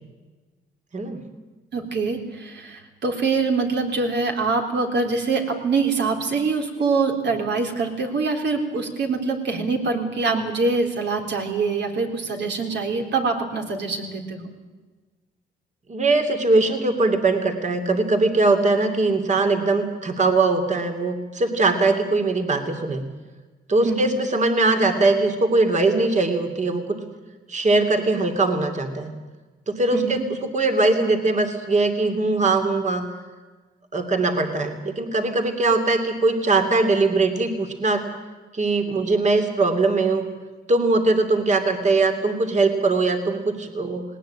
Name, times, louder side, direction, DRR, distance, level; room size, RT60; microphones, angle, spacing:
voice 1, 1.7-14.4 23.8-24.1 29.9-30.2, right 4 dB, 60° right, 3 dB, 4.0 m, -24 dB
voice 2, 15.9-23.0 23.7-26.8 27.5-29.1 29.7-30.2 30.5-33.0 33.9-38.0 38.5-40.3 40.7-44.0, right 3 dB, 35° right, 6 dB, 2.9 m, -21 dB
19.0 x 19.0 x 8.9 m, 1.3 s
cardioid pair, 90°, 20 cm